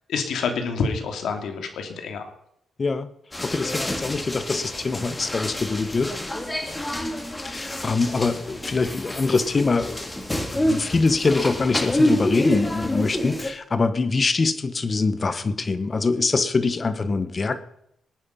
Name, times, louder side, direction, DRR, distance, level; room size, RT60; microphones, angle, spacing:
voice 1, 0.1-2.3, left 5 dB, 80° left, 5 dB, 2.8 m, -27 dB
voice 2, 2.8-3.1 3.4-6.1 7.4-10.1 10.5-17.6, left 4 dB, 35° left, 12 dB, 1.5 m, -24 dB
sound 1, 3.3-13.5, left 1 dB, 20° left, 3.1 m, -28 dB
20.5 x 9.3 x 5.5 m, 0.75 s
cardioid pair, 85°, 0 cm